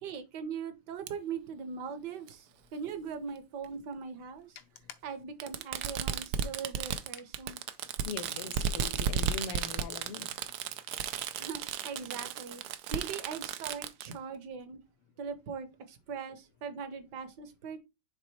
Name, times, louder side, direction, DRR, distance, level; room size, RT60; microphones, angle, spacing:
voice 1, 0.0-4.6 5.0-7.6 11.4-12.6 12.9-14.8 15.2-17.8, right 6 dB, 60° right, 1.3 m, -40 dB
Fireworks, 1.1-1.2 2.3-2.4 3.6-3.7 5.4-14.1, right 8 dB, 85° right, 0.9 m, -34 dB
voice 2, 4.6-4.9 8.0-10.5, left 6 dB, 80° left, 1.7 m, -42 dB
6.3 x 3.8 x 4.2 m
omnidirectional pair, 2.4 m